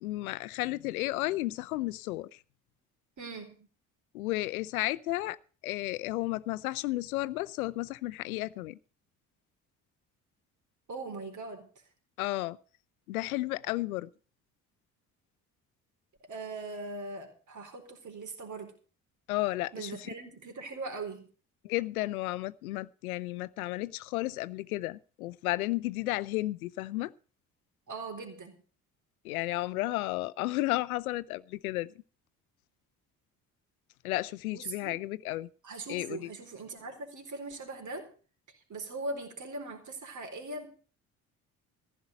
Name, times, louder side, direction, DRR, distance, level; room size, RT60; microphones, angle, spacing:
voice 1, 0.0-2.3 4.1-5.4 5.6-8.8 12.2-12.6 13.1-14.1 19.3-19.9 21.6-27.1 29.2-31.9 34.0-35.5 35.9-36.3, left 18 dB, 85° left, 0.6 m, -33 dB
voice 2, 3.2-3.7 10.9-11.7 16.3-18.7 19.7-21.3 27.9-28.6 34.5-34.9 35.6-38.1 38.7-40.7, right 3 dB, 45° right, 4.1 m, -40 dB
15.0 x 5.6 x 9.9 m
hypercardioid pair, 50°, 42 cm